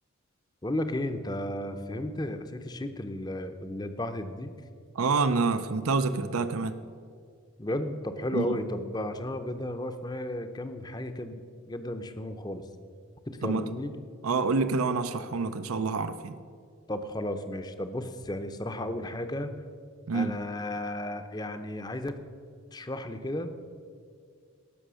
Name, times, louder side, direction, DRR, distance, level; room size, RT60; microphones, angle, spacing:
voice 1, 0.6-4.5 7.6-12.6 13.3-13.9 16.9-19.5 20.1-22.2 22.7-23.5, left 1 dB, 20° left, 9 dB, 0.6 m, -34 dB
voice 2, 4.9-6.8 8.3-8.6 13.4-13.7 14.2-16.3 20.1-20.3, right 4 dB, 85° right, 11 dB, 0.6 m, -27 dB
18.0 x 6.4 x 6.3 m, 2.2 s
head